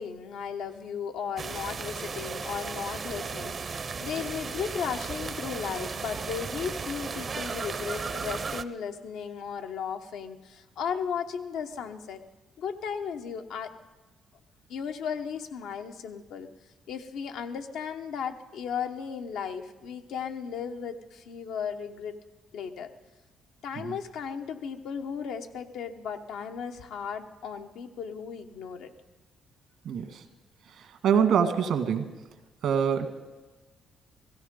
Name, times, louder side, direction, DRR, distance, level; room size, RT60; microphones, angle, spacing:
voice 1, 0.0-12.2 12.6-13.7 14.7-16.5 16.9-22.2 22.5-22.9 23.6-28.9, left 7 dB, 85° left, 6 dB, 1.0 m, -35 dB
sound 1, 1.4-8.6, right 5 dB, 40° right, 0.6 m, -35 dB
voice 2, 29.9-30.2 30.8-32.1 32.6-33.1, right 7 dB, 75° right, 7 dB, 1.6 m, -25 dB
16.5 x 15.0 x 5.3 m, 1.2 s
cardioid pair, 90°, 0 cm